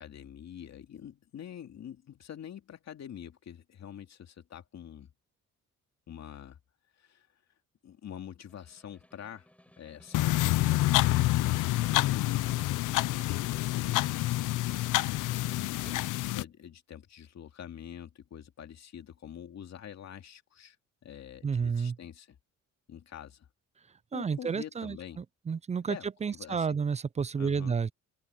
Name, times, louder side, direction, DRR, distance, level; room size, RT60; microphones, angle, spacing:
voice 1, 0.0-5.1 6.1-6.6 7.0-7.3 7.8-9.5 9.8-11.5 11.8-14.3 15.9-20.8 21.0-22.4 22.9-23.5 24.1-25.2 25.9-26.8 27.4-27.8, left 9 dB, 60° left, 2.6 m, -46 dB
Snare drum, 8.5-16.4, left 1 dB, 5° left, 7.7 m, -57 dB
sound 1, 10.1-16.4, left 17 dB, 90° left, 0.8 m, -27 dB
voice 2, 21.4-22.0 24.1-27.9, right 6 dB, 25° right, 0.4 m, -31 dB
open air
cardioid pair, 90°, 30 cm